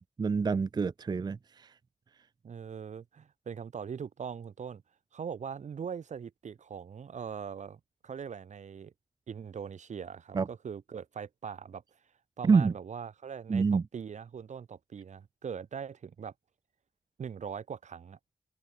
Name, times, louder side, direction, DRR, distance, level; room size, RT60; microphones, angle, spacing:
voice 1, 0.2-1.7 10.3-10.5 12.4-12.7 13.5-13.8, right 5 dB, 35° right, 0.4 m, -27 dB
voice 2, 2.4-4.8 5.1-8.9 9.3-11.8 12.4-16.3 17.2-18.2, right 7 dB, 80° right, 2.6 m, -41 dB
open air
cardioid pair, 50°, 12 cm